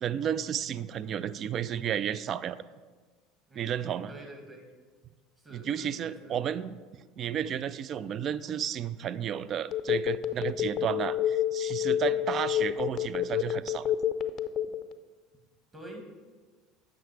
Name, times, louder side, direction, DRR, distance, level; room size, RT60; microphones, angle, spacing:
voice 1, 0.0-2.6 3.6-4.1 5.5-6.8 7.2-13.8, right 9 dB, 45° right, 16 dB, 0.3 m, -32 dB
voice 2, 3.5-4.7 5.4-6.4 12.0-12.3 15.7-16.1, right 1 dB, 20° right, 2 dB, 1.9 m, -48 dB
Telephone, 9.7-14.9, left 11 dB, 50° left, 0.4 m, -28 dB
8.4 x 5.9 x 4.7 m, 1.4 s
supercardioid pair, 105°, 0 cm